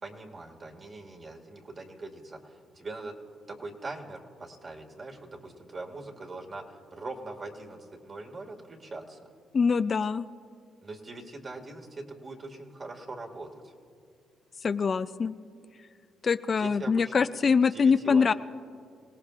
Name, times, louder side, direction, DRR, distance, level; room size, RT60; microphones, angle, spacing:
voice 1, 0.0-3.1 3.5-9.3 10.8-13.7 16.6-17.3 17.7-18.3, right 2 dB, 40° right, 1 dB, 2.0 m, -42 dB
voice 2, 9.5-10.2 14.6-15.3 16.2-18.3, left 5 dB, 40° left, 12 dB, 0.4 m, -24 dB
26.5 x 18.0 x 2.5 m, 2.2 s
cardioid pair, 90°, 0 cm